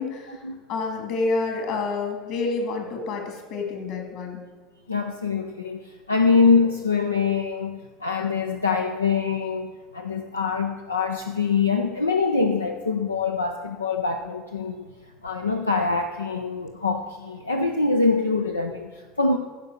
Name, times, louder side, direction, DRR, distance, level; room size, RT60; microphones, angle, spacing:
voice 1, 0.0-4.4, left 3 dB, 55° left, 3 dB, 2.5 m, -28 dB
voice 2, 4.9-14.9 15.2-19.4, left 4 dB, 85° left, 4 dB, 0.5 m, -24 dB
15.0 x 5.5 x 6.4 m, 1.4 s
figure-of-eight pair, 70°, 0 cm